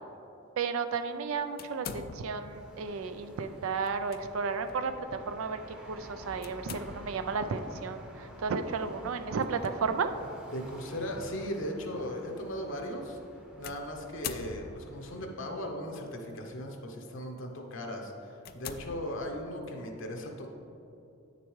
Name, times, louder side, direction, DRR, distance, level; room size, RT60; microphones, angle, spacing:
voice 1, 0.6-4.9 5.3-5.6 5.9-10.1, right 5 dB, 75° right, 9 dB, 0.4 m, -33 dB
sound 1, 1.6-2.6 3.8-4.2 4.7-4.8 6.4-7.3 9.4-9.7 10.5-10.6 13.6-15.1 16.0-16.4 17.0-17.2 17.7-17.8 18.4-19.6, left 7 dB, 45° left, 0.3 m, -43 dB
Cars Passing By, 2.3-15.6, equal, 5° right, 0.7 m, -50 dB
voice 2, 10.5-13.2 13.6-20.5, equal, 65° left, 2 dB, 0.8 m, -38 dB
8.7 x 6.7 x 3.1 m, 2.8 s
head